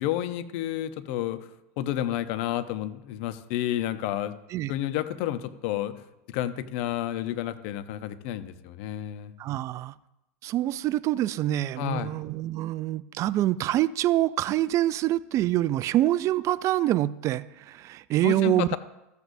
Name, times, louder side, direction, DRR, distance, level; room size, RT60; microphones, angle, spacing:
voice 1, 0.0-1.4 1.8-4.3 4.7-5.9 6.3-9.3 11.8-12.1 18.2-18.8, left 12 dB, 60° left, 12 dB, 0.8 m, -30 dB
voice 2, 9.4-9.9 10.4-18.7, right 14 dB, 40° right, 17 dB, 0.4 m, -26 dB
14.0 x 8.2 x 2.7 m, 0.90 s
hypercardioid pair, 110°, 8 cm